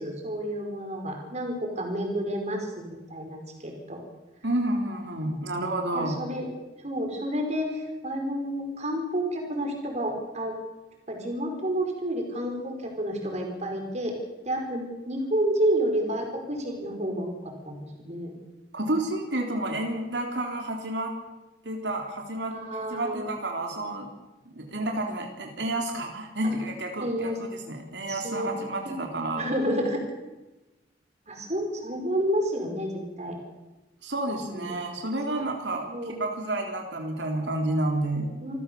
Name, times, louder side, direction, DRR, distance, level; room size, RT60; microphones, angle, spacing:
voice 1, 0.0-4.0 5.9-6.5 6.8-10.5 11.1-14.1 14.4-18.3 22.5-23.3 26.4-26.5 27.0-27.4 28.1-28.5 29.4-30.0 31.3-33.4 34.2-34.7 35.3-35.4 35.9-36.1 38.4-38.6, right 1 dB, 40° right, 3 dB, 5.0 m, -30 dB
voice 2, 4.4-6.2 18.7-21.1 21.6-24.1 24.5-27.3 27.7-29.5 34.0-35.9 36.2-38.3, right 1 dB, 90° right, 2 dB, 3.6 m, -30 dB
27.0 x 15.5 x 7.0 m, 1.1 s
head